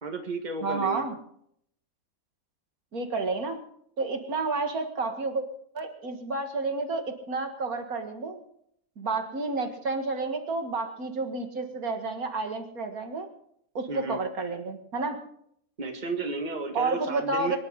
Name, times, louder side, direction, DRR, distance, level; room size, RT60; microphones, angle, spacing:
voice 1, 0.0-1.0 13.9-14.2 15.8-17.6, right 3 dB, 30° right, 3 dB, 1.9 m, -33 dB
voice 2, 0.6-1.1 2.9-3.6 4.0-5.4 5.7-8.4 9.0-13.3 13.7-15.2 16.7-17.6, right 3 dB, 75° right, 5 dB, 2.3 m, -30 dB
24.5 x 11.0 x 3.9 m, 0.68 s
omnidirectional pair, 1.6 m